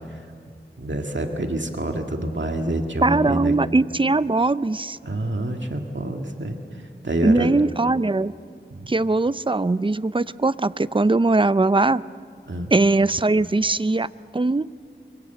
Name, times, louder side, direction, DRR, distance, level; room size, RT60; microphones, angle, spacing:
voice 1, 0.8-3.6 5.0-6.6 7.0-7.5 8.7-8.9 12.5-12.7, right 1 dB, 85° right, 3 dB, 2.0 m, -27 dB
voice 2, 3.0-5.0 7.2-8.3 8.9-12.0 12.7-14.1 14.3-14.6, right 2 dB, 25° right, 16 dB, 0.5 m, -20 dB
25.5 x 23.0 x 8.0 m, 2.2 s
wide cardioid pair, 40°, 19 cm